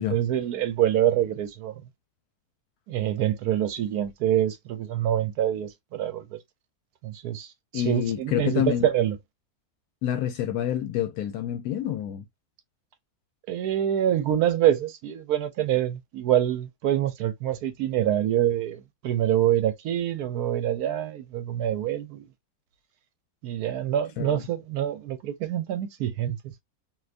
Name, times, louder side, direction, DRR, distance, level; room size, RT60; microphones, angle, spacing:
voice 1, 0.0-1.8 2.9-6.4 7.0-7.5 7.7-9.2 13.5-22.3 23.4-26.6, right 11 dB, 75° right, 1.1 m, -26 dB
voice 2, 7.7-8.9 10.0-12.2 24.2-24.4, left 11 dB, 80° left, 1.1 m, -27 dB
2.7 x 2.5 x 3.2 m
omnidirectional pair, 1.7 m